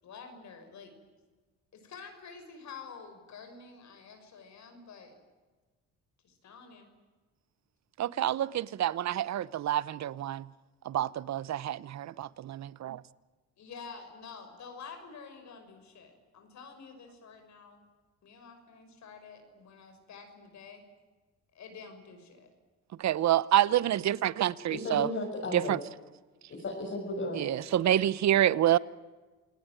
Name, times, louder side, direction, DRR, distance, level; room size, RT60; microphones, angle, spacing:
voice 1, 0.0-1.0 1.7-5.2 6.2-6.9 13.6-17.8 18.2-20.8 21.5-22.5, left 5 dB, 65° left, 6.2 m, -49 dB
voice 2, 8.0-10.5 10.8-13.0 23.0-25.1 25.5-25.8 27.3-28.8, right 12 dB, 65° right, 0.9 m, -27 dB
voice 3, 24.7-25.8 26.5-27.4, left 2 dB, 45° left, 6.8 m, -34 dB
29.0 x 19.0 x 9.1 m
cardioid pair, 90°, 30 cm